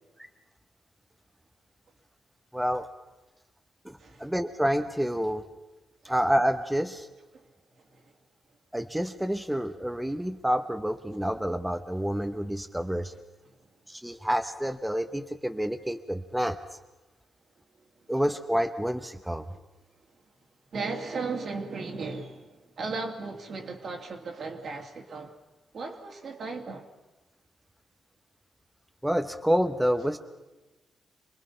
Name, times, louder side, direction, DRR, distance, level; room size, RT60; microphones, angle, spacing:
voice 1, 2.5-2.9 3.8-5.4 6.0-7.1 8.7-13.1 13.9-16.6 18.1-19.5 29.0-30.2, equal, 5° right, 1.0 m, -28 dB
voice 2, 20.7-25.3 25.7-26.9, right 4 dB, 60° right, 2.7 m, -36 dB
26.0 x 20.5 x 5.7 m
cardioid pair, 100°, 0 cm